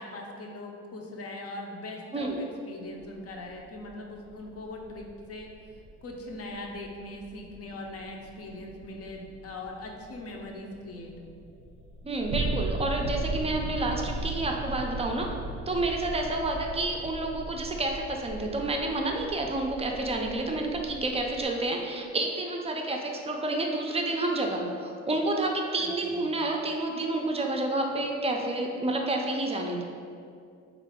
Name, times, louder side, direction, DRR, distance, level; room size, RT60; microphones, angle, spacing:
voice 1, 0.0-5.5 6.0-11.3 25.8-26.3, left 2 dB, 50° left, 1 dB, 0.6 m, -41 dB
sound 1, 2.9-21.5, right 2 dB, 90° right, 0.5 m, -38 dB
voice 2, 12.0-15.3 15.7-29.8, right 2 dB, 20° right, 2 dB, 0.4 m, -29 dB
3.8 x 2.4 x 3.5 m, 2.4 s
cardioid pair, 90°, 30 cm